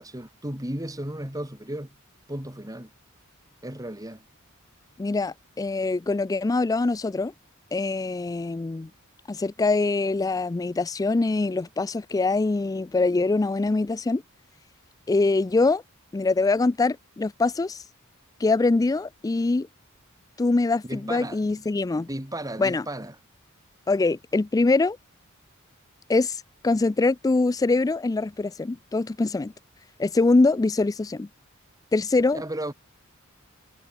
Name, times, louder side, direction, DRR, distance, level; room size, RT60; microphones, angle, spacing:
voice 1, 0.0-1.9 2.3-2.9 3.6-4.2 20.8-21.6 22.1-23.1 32.3-32.7, right 1 dB, 15° right, 4.7 m, -34 dB
voice 2, 5.0-7.3 7.7-8.9 9.3-14.2 15.1-15.8 16.1-17.8 18.4-19.7 20.4-22.1 22.6-22.9 23.9-25.0 26.1-29.5 30.0-31.3 31.9-32.4, left 3 dB, 15° left, 0.3 m, -23 dB
head